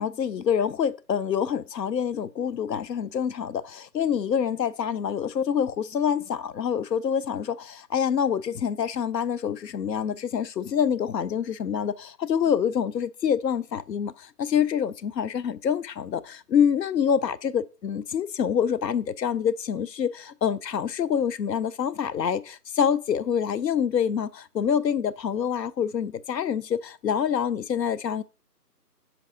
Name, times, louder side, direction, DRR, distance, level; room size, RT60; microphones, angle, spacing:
voice 1, 0.0-28.2, left 8 dB, 80° left, 0.6 m, -26 dB
5.8 x 4.6 x 3.7 m
figure-of-eight pair, 175°, 49 cm